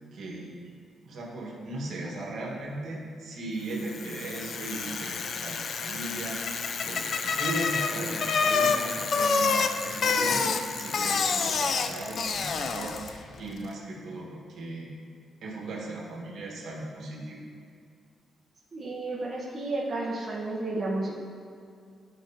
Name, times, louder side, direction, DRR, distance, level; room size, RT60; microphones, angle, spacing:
voice 1, 0.1-0.6 1.0-6.3 6.8-14.9 15.4-17.4, right 2 dB, 65° right, -3 dB, 1.4 m, -37 dB
Bicycle, 3.8-13.2, left 5 dB, 45° left, 0.3 m, -28 dB
voice 2, 18.7-21.1, right 2 dB, 25° right, -6 dB, 0.9 m, -32 dB
11.5 x 4.4 x 2.8 m, 2.3 s
wide cardioid pair, 175°, 0 cm